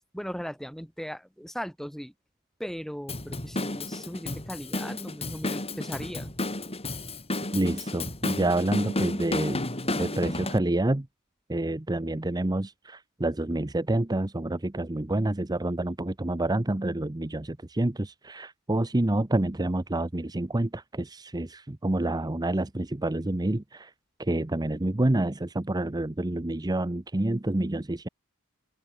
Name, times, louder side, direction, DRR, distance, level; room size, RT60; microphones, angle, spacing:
voice 1, 0.1-2.1 2.6-6.3, equal, ahead, 4.0 m, -38 dB
Drum kit / Drum, 3.1-10.6, left 2 dB, 30° left, 5.0 m, -32 dB
voice 2, 7.5-9.6 9.9-11.1 11.5-23.9 24.2-28.1, right 1 dB, 20° right, 0.8 m, -28 dB
open air
head